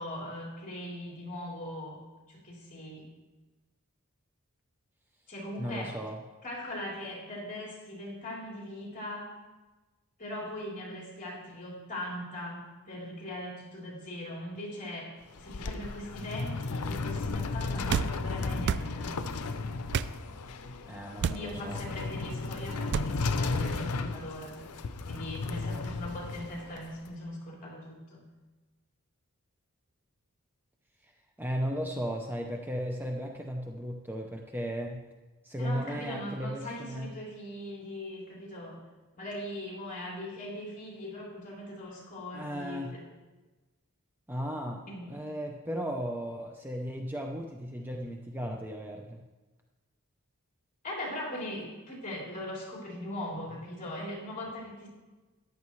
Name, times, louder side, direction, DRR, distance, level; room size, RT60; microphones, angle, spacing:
voice 1, 0.0-2.0 2.3-3.1 5.3-6.0 6.4-9.3 10.2-19.1 21.2-24.5 25.1-28.2 35.6-38.8 39.1-43.0 44.9-45.3 50.8-54.9, left 1 dB, 35° left, -4 dB, 3.6 m, -40 dB
voice 2, 5.6-6.1 20.9-21.8 31.4-35.0 35.4-37.1 42.3-42.9 44.3-44.8 45.1-49.2, equal, 10° right, 1 dB, 0.6 m, -35 dB
sound 1, 15.2-27.1, left 3 dB, 80° left, 0.7 m, -34 dB
sound 2, 17.9-18.1 18.6-18.9 19.9-20.1 21.2-21.5 22.9-23.1, right 6 dB, 50° right, 0.3 m, -28 dB
14.0 x 10.5 x 3.2 m, 1.2 s
head